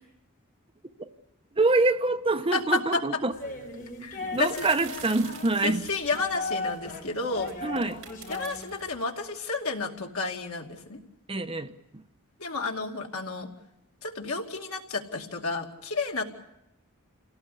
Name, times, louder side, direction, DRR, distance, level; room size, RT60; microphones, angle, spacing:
voice 1, 1.5-3.3 4.3-5.8 7.6-8.0 11.3-12.0, right 2 dB, 25° right, 0.9 m, -26 dB
voice 2, 2.5-3.0 4.0-4.7 5.6-7.5 8.3-11.0 12.4-13.5 14.0-16.2, left 3 dB, 70° left, 2.5 m, -31 dB
sound 1, 3.3-8.9, left 3 dB, 40° left, 6.0 m, -37 dB
sound 2, 4.4-6.5 7.3-9.0, right 8 dB, 65° right, 2.4 m, -45 dB
27.5 x 17.5 x 8.4 m
head